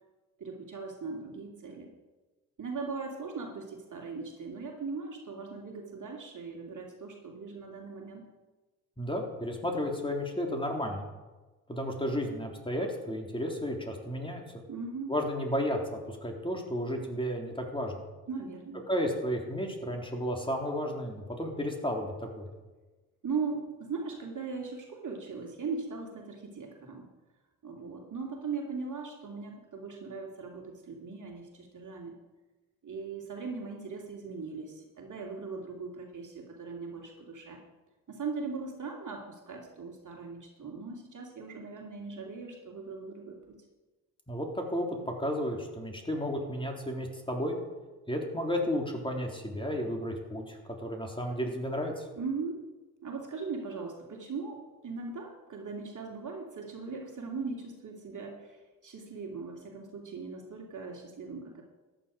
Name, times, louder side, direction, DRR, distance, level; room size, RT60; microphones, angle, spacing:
voice 1, 0.4-1.9 2.6-8.3 14.7-15.1 18.3-18.8 23.2-27.1 27.6-32.1 32.8-37.6 38.1-43.6 52.2-52.6 53.0-61.6, right 4 dB, 40° right, 0 dB, 2.8 m, -39 dB
voice 2, 9.0-11.0 11.7-14.6 15.1-18.0 18.9-22.5 44.3-47.6 48.1-52.1, equal, 10° left, 2 dB, 3.6 m, -33 dB
13.5 x 10.5 x 5.2 m, 1.2 s
hypercardioid pair, 45°, 46 cm